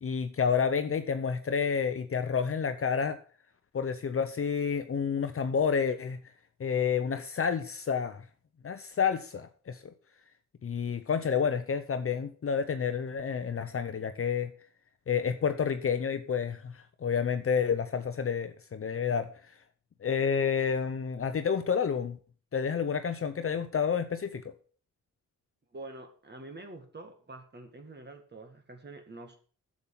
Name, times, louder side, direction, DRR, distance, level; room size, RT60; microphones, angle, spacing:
voice 1, 0.0-3.2 3.7-6.2 6.6-8.2 8.6-9.9 10.6-14.5 15.1-19.3 20.0-22.2 22.5-24.5, left 6 dB, 45° left, 9 dB, 0.8 m, -29 dB
voice 2, 25.7-29.4, right 2 dB, 35° right, 5 dB, 2.1 m, -46 dB
8.0 x 7.4 x 7.4 m, 0.42 s
cardioid pair, 85°, 31 cm